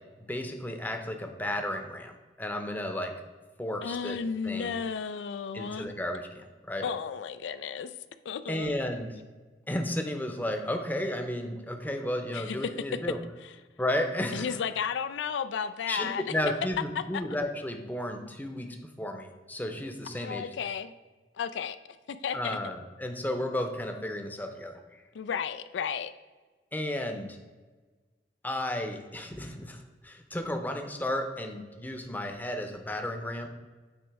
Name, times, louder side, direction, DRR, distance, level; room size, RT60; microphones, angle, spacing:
voice 1, 0.2-3.1 3.6-4.2 4.4-4.7 5.5-6.8 8.5-9.2 9.7-13.2 13.8-14.6 15.9-20.4 22.3-25.0 26.7-27.4 28.4-33.5, left 1 dB, 10° left, 4 dB, 0.7 m, -33 dB
voice 2, 3.8-5.9 6.8-7.9 8.2-8.8 12.3-12.7 13.4-13.5 14.3-16.2 17.0-17.2 20.1-20.9 21.4-21.8 22.1-22.6 25.1-26.1, left 7 dB, 90° left, 12 dB, 0.4 m, -33 dB
8.9 x 3.1 x 4.7 m, 1.3 s
head